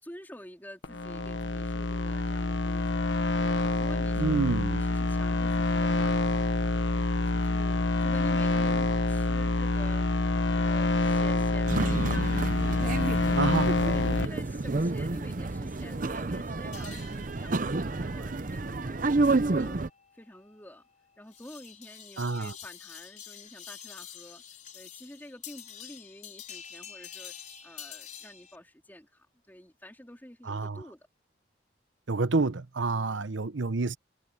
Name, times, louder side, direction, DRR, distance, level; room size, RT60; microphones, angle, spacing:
voice 1, 0.0-3.1 3.4-6.4 6.9-19.0 19.4-19.8 20.1-20.8 21.2-24.4 24.7-27.3 27.6-31.1 32.9-33.3, left 1 dB, 10° left, 3.5 m, -48 dB
sound 1, 0.8-14.3, left 2 dB, 80° left, 1.2 m, -27 dB
voice 2, 4.2-4.8 13.4-13.7 22.2-22.5 30.5-30.8 32.1-34.0, right 3 dB, 90° right, 0.9 m, -28 dB
sound 2, 11.7-19.9, right 3 dB, 45° right, 0.7 m, -30 dB
sound 3, 16.7-28.6, left 9 dB, 45° left, 4.8 m, -48 dB
head